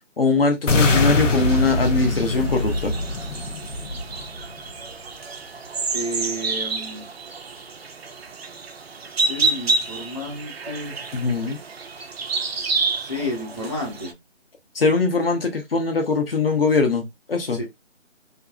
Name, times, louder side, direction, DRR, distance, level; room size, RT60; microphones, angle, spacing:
voice 1, 0.2-2.9 11.1-11.6 14.7-17.6, left 4 dB, 50° left, 0.8 m, -21 dB
sound 1, 0.7-4.7, left 2 dB, 90° left, 0.8 m, -23 dB
sound 2, 0.9-14.1, right 3 dB, 55° right, 0.5 m, -29 dB
voice 2, 5.9-7.1 9.2-10.9 13.0-14.1 17.5-17.6, left 1 dB, 25° left, 0.9 m, -31 dB
2.6 x 2.5 x 2.2 m
hypercardioid pair, 175°, 37 cm